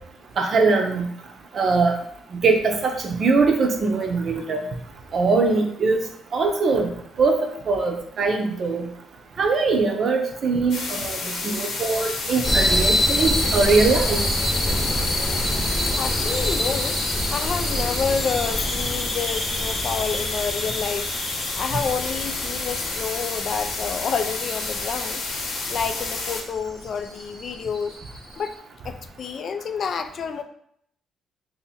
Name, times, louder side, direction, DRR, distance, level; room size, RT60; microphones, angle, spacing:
voice 1, 0.4-1.1 1.5-2.0 2.3-4.7 5.1-6.0 6.3-6.9 7.2-8.9 9.4-14.2, right 4 dB, 55° right, 4 dB, 0.6 m, -21 dB
sound 1, 10.7-26.4, left 3 dB, 80° left, 0.9 m, -30 dB
sound 2, 12.4-28.5, equal, 15° left, 0.9 m, -27 dB
voice 2, 15.5-17.0 17.3-21.1 21.6-25.2 25.7-28.0 28.4-28.5 28.8-30.4, left 6 dB, 55° left, 7 dB, 0.3 m, -29 dB
2.8 x 2.6 x 4.1 m, 0.69 s
cardioid pair, 90°, 0 cm